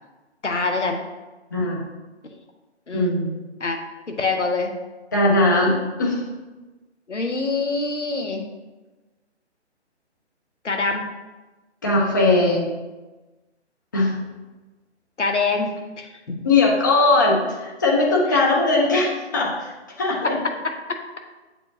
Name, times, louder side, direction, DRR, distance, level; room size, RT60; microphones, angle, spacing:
voice 1, 0.4-1.0 2.9-3.2 3.6-3.8 4.1-4.7 7.1-8.4 10.6-11.0 11.9-12.6 15.2-15.7 16.0-16.4 18.3-18.4, left 3 dB, 85° left, 3 dB, 1.0 m, -25 dB
voice 2, 1.5-1.8 2.9-3.3 5.1-6.2 11.8-12.6 13.9-14.1 16.4-19.7 20.0-20.4, left 2 dB, 15° left, -3 dB, 0.6 m, -19 dB
7.7 x 4.5 x 2.7 m, 1.2 s
figure-of-eight pair, 145°, 35 cm